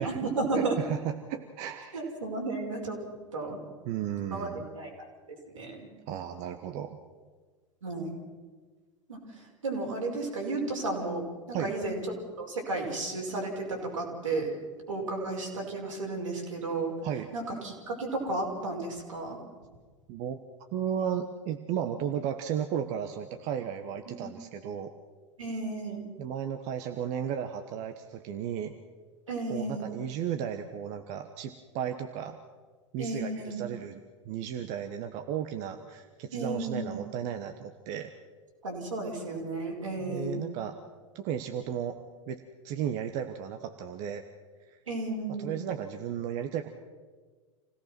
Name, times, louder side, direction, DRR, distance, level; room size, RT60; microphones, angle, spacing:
voice 1, 0.0-0.8 1.9-3.0 3.3-3.6 4.3-5.1 5.5-5.9 7.8-8.1 9.1-9.2 9.6-11.2 11.5-12.0 12.4-14.5 14.9-16.9 17.3-19.4 24.1-24.3 25.4-26.0 29.3-29.9 33.0-33.7 36.3-37.0 38.6-40.5 44.9-45.5, right 2 dB, 80° right, -1 dB, 5.8 m, -33 dB
voice 2, 0.5-2.1 3.5-3.6 3.8-4.6 6.1-7.0 11.5-11.7 17.0-17.3 20.1-20.4 20.7-24.9 26.2-28.7 29.5-32.4 32.9-38.1 40.0-40.8 41.1-42.0 42.3-44.2 44.7-44.8 45.4-46.7, right 9 dB, 45° right, 7 dB, 1.3 m, -34 dB
27.5 x 17.5 x 6.1 m, 1.4 s
figure-of-eight pair, 90°, 16 cm